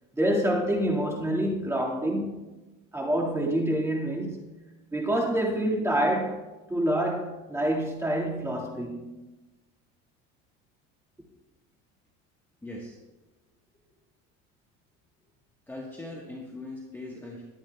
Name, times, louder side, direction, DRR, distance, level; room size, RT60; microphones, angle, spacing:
voice 1, 0.1-2.4 2.9-4.6 4.9-9.1, right 1 dB, 10° right, 1.9 m, -27 dB
voice 2, 12.6-13.0 15.7-17.4, left 2 dB, 5° left, 1.3 m, -40 dB
20.5 x 8.6 x 2.3 m
cardioid pair, 140°, 31 cm